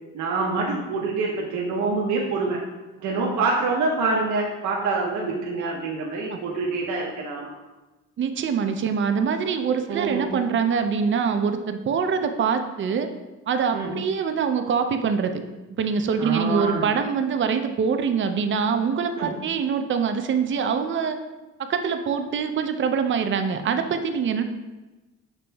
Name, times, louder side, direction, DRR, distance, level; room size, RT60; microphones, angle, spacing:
voice 1, 0.1-2.6 3.0-7.5 9.9-10.4 13.7-13.9 16.2-16.9 19.2-19.3, right 3 dB, 75° right, -3 dB, 0.7 m, -26 dB
voice 2, 8.2-13.1 13.5-15.4 15.8-21.2 21.6-24.4, right 6 dB, 40° right, 7 dB, 0.4 m, -24 dB
6.8 x 2.9 x 2.2 m, 1.1 s
cardioid pair, 90°, 30 cm